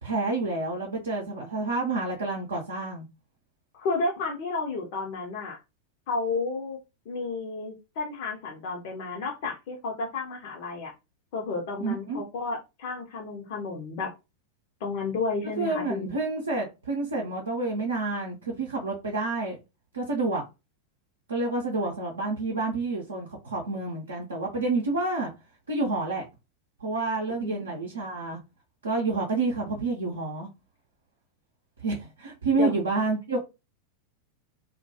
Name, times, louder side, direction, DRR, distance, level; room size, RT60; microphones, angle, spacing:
voice 1, 0.0-3.1 11.8-12.2 15.6-19.6 19.9-20.4 21.3-25.3 25.7-26.2 26.8-28.4 28.8-30.5 31.8-33.4, right 3 dB, 70° right, 0.5 m, -29 dB
voice 2, 3.7-5.6 6.1-6.8 7.1-10.9 11.3-14.1 14.8-16.2 27.4-27.9 32.5-32.7, left 3 dB, 50° left, 0.6 m, -32 dB
2.2 x 2.1 x 2.7 m
figure-of-eight pair, 90°, 0 cm